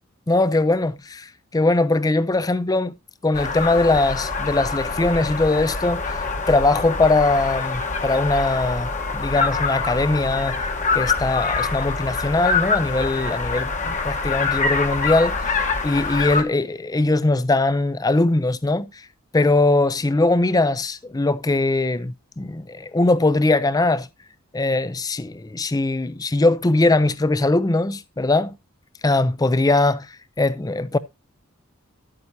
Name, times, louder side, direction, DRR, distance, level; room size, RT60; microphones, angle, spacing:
voice 1, 0.3-2.9 3.2-10.6 10.9-15.6 15.8-19.0 19.3-24.1 24.5-28.5 29.0-30.1 30.4-31.0, left 2 dB, 20° left, 0.5 m, -21 dB
sound 1, 3.3-16.4, left 4 dB, 35° left, 1.2 m, -25 dB
11.0 x 8.7 x 2.7 m
head